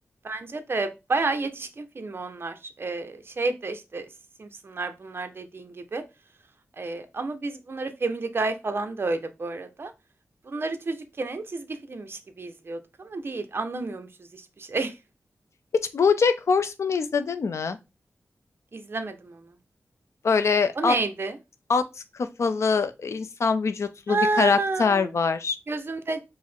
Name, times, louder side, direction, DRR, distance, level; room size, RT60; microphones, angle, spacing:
voice 1, 0.2-4.0 4.4-6.0 6.8-9.9 10.5-14.1 14.3-14.9 18.7-19.4 20.8-21.3 24.1-25.1 25.7-26.2, right 3 dB, 50° right, 0.7 m, -30 dB
voice 2, 15.7-17.8 20.2-21.0 21.7-25.6, left 5 dB, 75° left, 0.5 m, -23 dB
4.7 x 2.1 x 4.3 m
wide cardioid pair, 90°, 5 cm